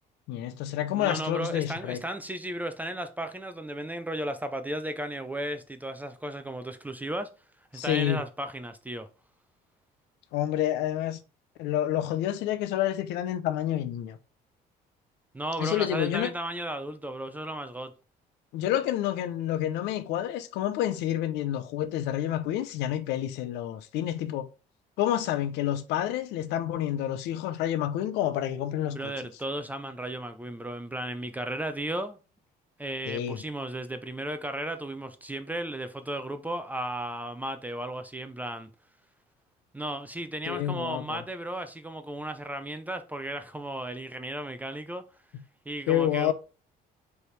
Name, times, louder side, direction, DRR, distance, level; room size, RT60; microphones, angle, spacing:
voice 1, 0.3-2.0 7.7-8.2 10.3-11.2 11.6-14.2 15.6-16.3 18.5-24.5 25.0-29.1 33.1-33.4 40.5-41.2 45.9-46.3, left 11 dB, 90° left, 0.6 m, -29 dB
voice 2, 0.9-7.3 7.7-9.1 15.3-17.9 28.8-32.2 32.8-38.7 39.7-45.0 45.7-46.3, right 1 dB, 10° right, 0.4 m, -35 dB
4.5 x 3.3 x 3.2 m
cardioid pair, 110°, 17 cm